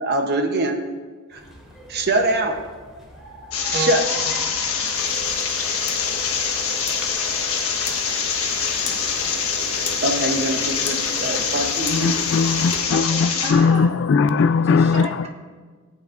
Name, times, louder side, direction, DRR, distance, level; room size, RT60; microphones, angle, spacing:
voice 1, 0.0-0.8 1.3-1.4 1.9-2.6 3.7-4.5 10.0-12.1, right 2 dB, 45° right, 5 dB, 0.8 m, -23 dB
sound 1, 1.3-13.2, equal, ahead, 2.3 m, -44 dB
sound 2, 3.5-13.5, left 6 dB, 70° left, 1.3 m, -24 dB
Camera, 4.8-13.6, left 3 dB, 30° left, 1.0 m, -36 dB
voice 2, 8.8-9.4 11.3-11.5 12.9-13.9 14.6-15.3, right 1 dB, 30° right, 1 dB, 1.2 m, -35 dB
voice 3, 11.9-15.3, left 5 dB, 55° left, 12 dB, 0.3 m, -19 dB
17.5 x 8.4 x 2.5 m, 1.5 s
head